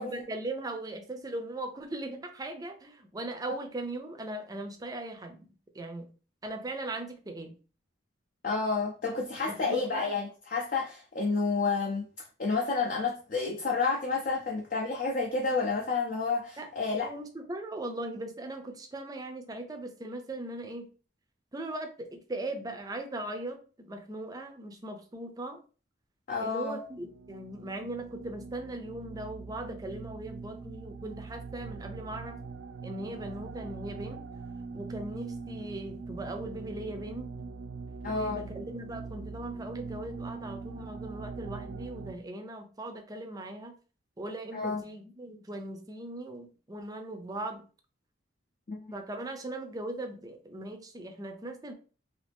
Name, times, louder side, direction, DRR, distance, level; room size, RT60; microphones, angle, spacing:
voice 1, 0.0-5.5 5.7-6.1 6.4-7.5 9.4-10.1 16.6-20.9 21.5-25.6 26.4-32.4 32.8-34.2 34.7-37.3 38.1-43.8 44.2-47.6 48.9-51.7, right 1 dB, 20° right, 0.5 m, -39 dB
voice 2, 8.4-12.1 12.4-17.1 26.3-26.8 38.0-38.5 44.5-44.8 48.7-48.9, left 4 dB, 50° left, 0.5 m, -30 dB
sound 1, 26.9-42.1, right 4 dB, 85° right, 0.4 m, -42 dB
2.8 x 2.6 x 3.4 m
head